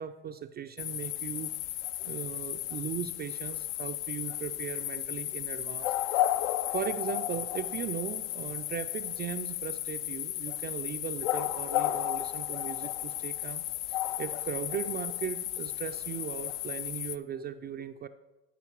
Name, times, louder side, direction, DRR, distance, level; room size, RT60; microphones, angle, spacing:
voice 1, 0.0-1.5 2.0-6.3 6.7-18.1, right 9 dB, 25° right, 8 dB, 0.4 m, -38 dB
sound 1, 0.8-17.2, left 14 dB, 60° left, 0.6 m, -34 dB
12.0 x 5.7 x 4.5 m, 1.0 s
hypercardioid pair, 75°, 39 cm